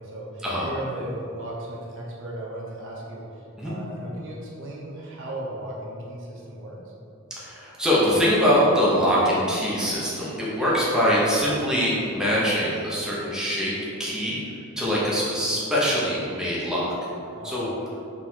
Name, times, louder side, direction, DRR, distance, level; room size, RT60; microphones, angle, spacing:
voice 1, 0.0-3.2 3.6-6.8 17.3-17.7, right 1 dB, 60° right, -3 dB, 0.8 m, -36 dB
voice 2, 7.4-13.7 14.0-14.4 14.8-16.9 17.4-17.7, equal, 5° right, -8 dB, 0.9 m, -23 dB
4.6 x 4.1 x 2.8 m, 2.7 s
head